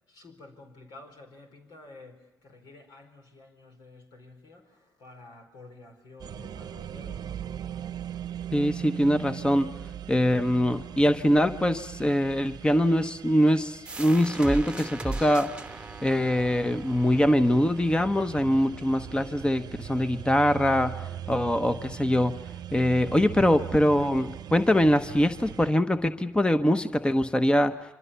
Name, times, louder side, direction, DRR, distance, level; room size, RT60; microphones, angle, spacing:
voice 1, 0.1-7.4, left 2 dB, 70° left, 4.7 m, -50 dB
sound 1, 6.2-25.7, right 10 dB, 60° right, 0.9 m, -40 dB
voice 2, 8.5-9.7 10.1-15.5 16.0-20.9 21.3-22.3 22.7-27.7, equal, 15° left, 1.1 m, -23 dB
sound 2, 13.9-19.3, right 2 dB, 15° right, 1.1 m, -39 dB
27.0 x 25.0 x 7.0 m
hypercardioid pair, 50°, 8 cm